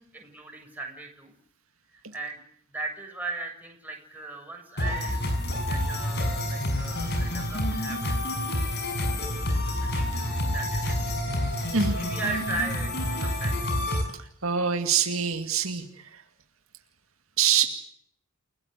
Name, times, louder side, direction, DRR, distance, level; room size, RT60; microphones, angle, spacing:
voice 1, 0.1-1.3 2.1-2.4 2.7-5.2 5.6-8.2 9.0-11.2 11.7-13.6 17.6-17.7, right 3 dB, 10° right, 1 dB, 7.3 m, -37 dB
sound 1, 4.8-14.0, left 1 dB, 50° left, 6.7 m, -28 dB
voice 2, 14.4-15.8 17.4-17.6, right 7 dB, 65° right, 6 dB, 2.3 m, -24 dB
30.0 x 18.5 x 8.3 m, 0.68 s
head